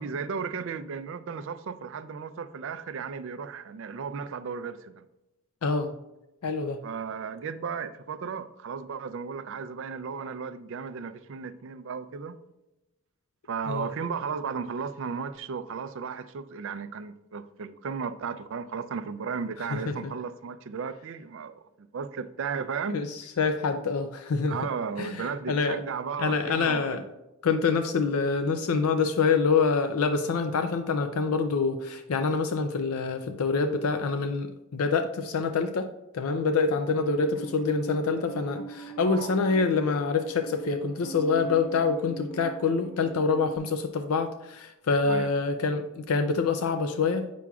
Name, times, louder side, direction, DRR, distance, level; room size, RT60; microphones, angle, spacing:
voice 1, 0.0-5.0 6.8-12.4 13.5-21.6 21.9-23.0 24.5-27.0 39.0-39.3 45.0-45.3, right 6 dB, 60° right, 0.4 m, -35 dB
voice 2, 5.6-5.9 6.4-6.8 13.7-13.9 19.7-20.0 22.9-24.6 25.0-25.8 26.2-27.0 27.4-35.9 36.1-47.3, left 4 dB, 90° left, 0.5 m, -26 dB
Musical instrument, 36.7-43.6, right 3 dB, ahead, 1.2 m, -42 dB
8.4 x 6.0 x 2.3 m
head